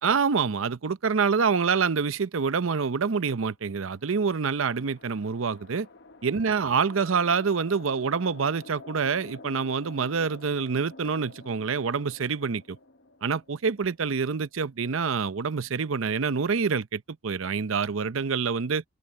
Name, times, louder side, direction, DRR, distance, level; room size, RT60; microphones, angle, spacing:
voice 1, 0.0-5.9 6.2-12.8 13.2-18.8, right 5 dB, 75° right, 0.6 m, -26 dB
sound 1, 4.0-14.3, left 3 dB, 55° left, 1.1 m, -49 dB
open air
head